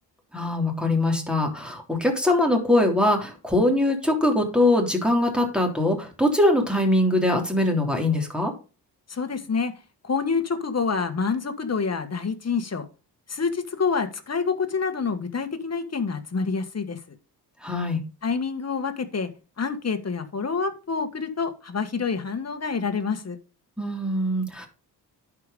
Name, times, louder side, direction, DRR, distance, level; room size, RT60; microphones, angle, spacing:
voice 1, 0.3-8.5 17.6-18.0 23.8-24.7, left 1 dB, ahead, 1 dB, 3.3 m, -22 dB
voice 2, 9.1-9.7 10.0-12.8 13.3-17.0 18.2-19.3 19.6-23.4, left 5 dB, 35° left, 8 dB, 1.5 m, -27 dB
10.5 x 5.0 x 5.2 m, 0.34 s
cardioid pair, 70°, 42 cm